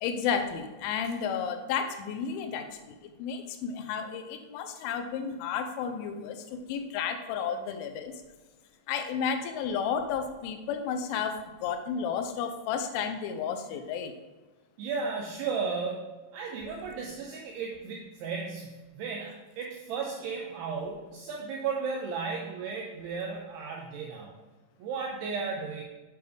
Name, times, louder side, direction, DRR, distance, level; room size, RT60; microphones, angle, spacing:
voice 1, 0.0-8.1 8.9-14.1, left 7 dB, 85° left, 6 dB, 3.1 m, -32 dB
voice 2, 14.8-24.3 24.8-25.8, right 5 dB, 85° right, 0 dB, 2.3 m, -35 dB
7.8 x 7.0 x 3.4 m, 1.2 s
omnidirectional pair, 5.5 m